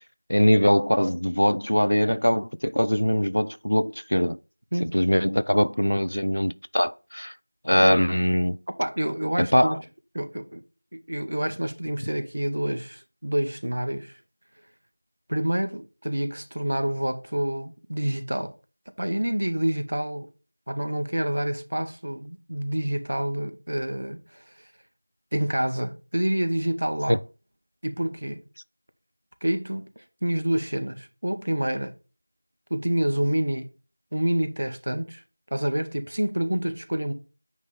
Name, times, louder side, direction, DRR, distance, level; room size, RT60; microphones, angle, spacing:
voice 1, 0.3-4.4 4.8-7.3 7.6-8.6 9.4-9.8 27.1-27.2, equal, 60° left, 0.4 m, -22 dB
voice 2, 8.8-9.8 10.1-10.6 10.9-14.2 15.3-18.5 19.0-20.3 20.7-24.4 25.3-27.2 27.8-28.4 29.4-31.9 32.7-33.7 34.1-35.2 35.5-37.1, right 1 dB, 25° right, 0.5 m, -28 dB
9.3 x 3.2 x 5.3 m
figure-of-eight pair, 180°, 0 cm